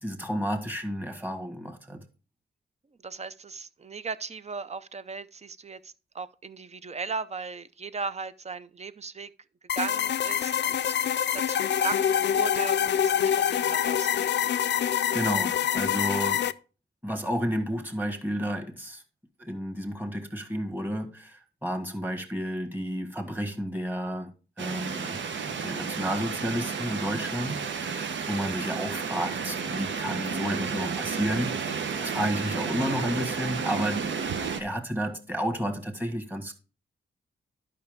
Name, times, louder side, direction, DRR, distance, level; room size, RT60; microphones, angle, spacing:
voice 1, 0.0-2.0 15.1-16.5 17.0-19.0 19.4-25.2 25.6-31.7 32.0-34.0 34.6-36.5, equal, 10° right, 1.6 m, -31 dB
voice 2, 3.0-9.3 9.7-11.0 11.3-14.3 14.6-14.7, right 5 dB, 35° right, 0.6 m, -37 dB
sound 1, 9.7-16.5, left 9 dB, 65° left, 0.4 m, -25 dB
sound 2, 24.6-34.6, right 6 dB, 75° right, 1.0 m, -32 dB
11.0 x 5.6 x 3.6 m
wide cardioid pair, 105°, 20 cm